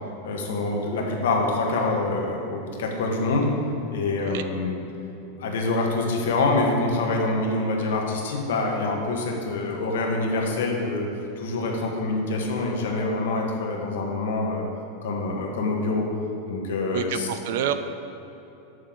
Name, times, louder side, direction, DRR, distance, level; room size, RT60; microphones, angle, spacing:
voice 1, 0.2-3.5 3.9-4.7 5.4-11.1 11.4-14.6 15.0-16.0 16.4-17.3, left 3 dB, 85° left, 0 dB, 1.2 m, -25 dB
voice 2, 16.9-17.7, right 10 dB, 55° right, 10 dB, 0.4 m, -28 dB
7.5 x 6.4 x 3.8 m, 3.0 s
supercardioid pair, 175°, 0 cm